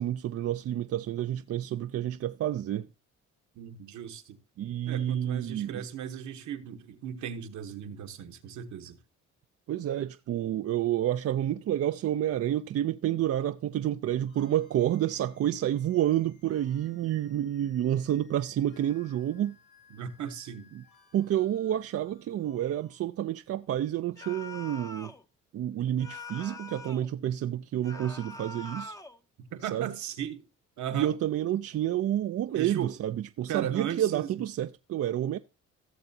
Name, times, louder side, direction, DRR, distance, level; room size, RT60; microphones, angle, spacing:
voice 1, 0.0-2.9 4.6-5.8 9.7-19.5 20.8-20.9 21.1-25.1 25.5-29.0 29.7-29.9 30.9-35.4, right 11 dB, 55° right, 0.5 m, -29 dB
voice 2, 3.5-4.4 4.9-9.0 19.9-20.7 29.4-30.4 30.8-31.1 32.5-32.9 33.5-34.3, right 9 dB, 75° right, 1.2 m, -36 dB
sound 1, 14.3-23.0, left 6 dB, 80° left, 3.8 m, -62 dB
sound 2, 24.2-25.2 26.0-27.1 27.8-29.2, left 2 dB, 10° left, 0.7 m, -43 dB
16.5 x 6.8 x 2.7 m
cardioid pair, 90°, 30 cm